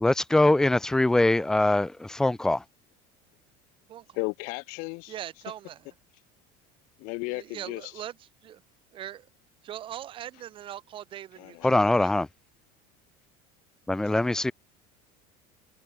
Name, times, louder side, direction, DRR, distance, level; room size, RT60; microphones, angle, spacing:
voice 1, 0.0-2.6 11.6-12.3 13.9-14.5, left 2 dB, 5° left, 0.4 m, -22 dB
voice 2, 4.1-5.1 7.0-7.9 11.4-11.9, left 31 dB, 60° left, 5.3 m, -35 dB
voice 3, 5.1-5.8 7.3-8.1 8.4-8.6 8.9-9.3 9.6-12.1, right 11 dB, 35° right, 7.2 m, -40 dB
cardioid pair, 170°, 16 cm